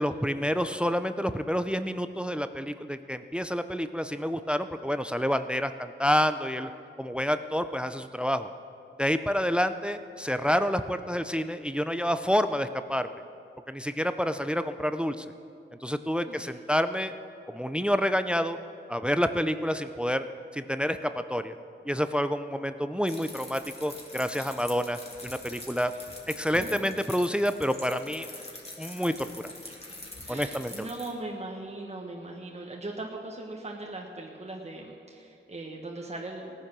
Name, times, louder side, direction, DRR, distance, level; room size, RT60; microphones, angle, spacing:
voice 1, 0.0-6.7 7.0-8.5 9.0-13.1 13.7-15.3 15.8-17.1 17.5-18.6 18.9-20.2 20.5-21.6 21.9-25.9 26.3-28.3 28.8-29.3 30.3-30.9, equal, 5° right, 10 dB, 0.5 m, -28 dB
voice 2, 16.3-16.6 26.5-26.9 30.2-36.5, right 2 dB, 30° right, -1 dB, 1.5 m, -39 dB
sound 1, 23.1-31.1, left 2 dB, 30° left, 2.5 m, -44 dB
17.5 x 9.9 x 6.1 m, 2.5 s
wide cardioid pair, 80°, 21 cm